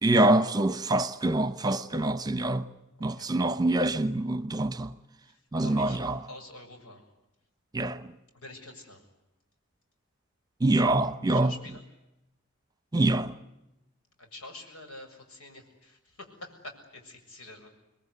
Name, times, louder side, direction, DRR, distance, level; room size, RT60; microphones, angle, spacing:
voice 1, 0.0-2.7 3.0-4.9 5.5-6.2 7.7-8.1 10.6-11.5 12.9-13.3, right 2 dB, 15° right, 1.0 m, -25 dB
voice 2, 3.1-3.5 5.2-6.0 6.3-7.0 8.3-9.0 11.3-11.8 14.2-17.7, left 2 dB, 90° left, 6.9 m, -47 dB
28.5 x 21.5 x 9.6 m
head